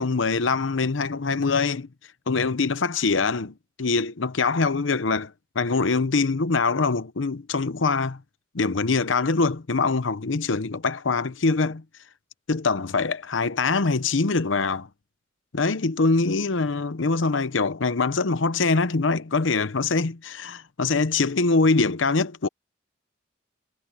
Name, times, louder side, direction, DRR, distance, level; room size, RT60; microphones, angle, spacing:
voice 1, 0.0-1.9 2.3-8.2 8.5-11.8 12.5-14.9 15.5-22.5, left 4 dB, 85° left, 0.8 m, -23 dB
head